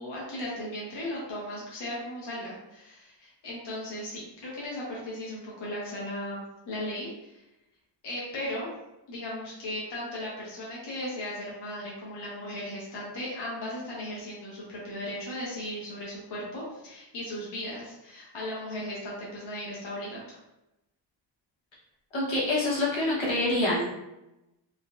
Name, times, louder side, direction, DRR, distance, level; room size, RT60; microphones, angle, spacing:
voice 1, 0.0-7.4 8.0-8.7 9.1-20.4, left 1 dB, 65° left, -6 dB, 0.9 m, -37 dB
voice 2, 22.1-23.8, left 2 dB, 85° left, -6 dB, 1.2 m, -26 dB
3.7 x 2.2 x 2.5 m, 0.93 s
wide cardioid pair, 110°, 45 cm